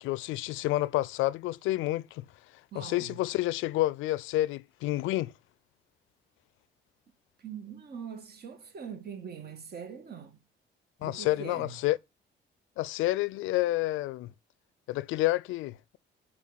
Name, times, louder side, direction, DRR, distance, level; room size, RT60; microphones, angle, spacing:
voice 1, 0.0-2.2 2.7-5.3 11.0-12.0 12.8-14.3 14.9-16.0, left 17 dB, 90° left, 0.4 m, -29 dB
voice 2, 2.7-3.2 7.4-10.4 11.0-11.8, right 6 dB, 55° right, 1.6 m, -42 dB
7.3 x 4.9 x 3.9 m
cardioid pair, 90°, 20 cm